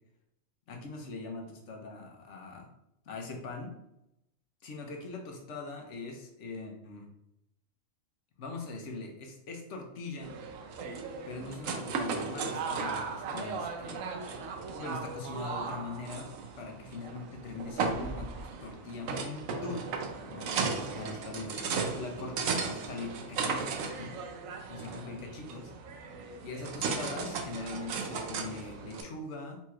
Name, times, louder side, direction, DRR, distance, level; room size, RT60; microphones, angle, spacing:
voice 1, 0.7-2.7 3.0-3.7 4.6-7.1 8.4-10.4 11.2-14.1 14.7-16.3 16.6-18.3 18.6-19.9 20.3-20.6 20.9-24.1 24.7-25.7 26.4-29.6, left 3 dB, 65° left, 2 dB, 1.1 m, -42 dB
sound 1, 10.2-29.0, right 4 dB, 85° right, 1.0 m, -36 dB
4.4 x 4.2 x 2.4 m, 0.83 s
omnidirectional pair, 1.4 m